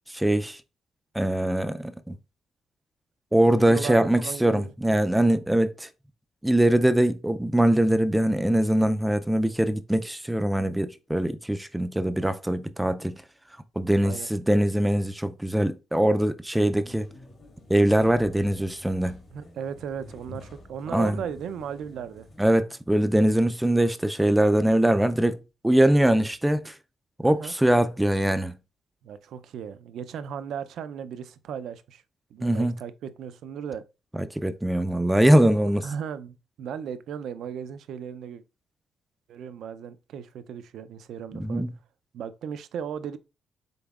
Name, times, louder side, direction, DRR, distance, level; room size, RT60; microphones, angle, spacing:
voice 1, 0.1-0.6 1.1-2.2 3.3-5.9 6.4-13.2 13.8-17.0 17.7-19.2 20.9-21.2 22.4-25.4 25.6-26.7 27.2-28.6 32.4-32.8 34.2-35.8 41.4-41.7, right 1 dB, 5° right, 0.4 m, -22 dB
voice 2, 3.4-5.0 14.0-14.3 19.3-22.3 27.2-27.5 29.0-32.0 32.3-33.8 35.8-38.4 39.3-41.7 42.1-43.2, right 8 dB, 75° right, 0.4 m, -36 dB
sound 1, 16.7-22.4, left 1 dB, 50° left, 1.6 m, -48 dB
5.3 x 3.9 x 2.4 m
cardioid pair, 90°, 0 cm